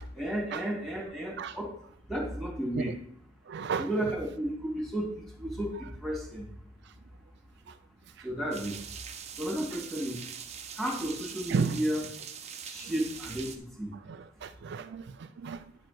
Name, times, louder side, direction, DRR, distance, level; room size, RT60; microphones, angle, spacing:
voice 1, 0.1-1.7 2.1-3.0 3.8-5.1 5.4-6.4 8.2-8.8 9.4-10.2 10.8-12.0 12.6-13.9, right 1 dB, ahead, 2.6 m, -33 dB
voice 2, 3.5-3.9 7.7-7.8 8.2-8.3 11.5-11.8 14.1-15.7, right 5 dB, 60° right, 0.4 m, -33 dB
sound 1, 8.5-13.6, right 7 dB, 35° right, 0.8 m, -43 dB
9.3 x 5.0 x 6.0 m
head